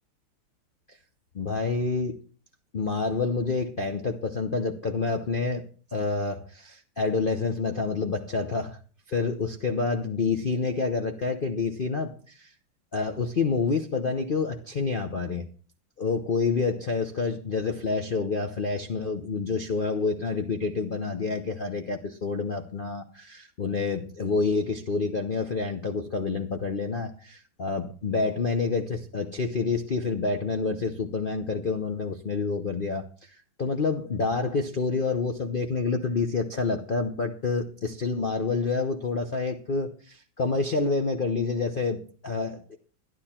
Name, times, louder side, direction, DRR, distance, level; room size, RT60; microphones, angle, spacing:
voice 1, 1.3-2.2 2.7-5.7 5.9-8.8 9.1-12.5 12.9-15.4 16.0-42.8, left 4 dB, 70° left, 0.5 m, -28 dB
12.0 x 11.5 x 4.3 m
omnidirectional pair, 2.2 m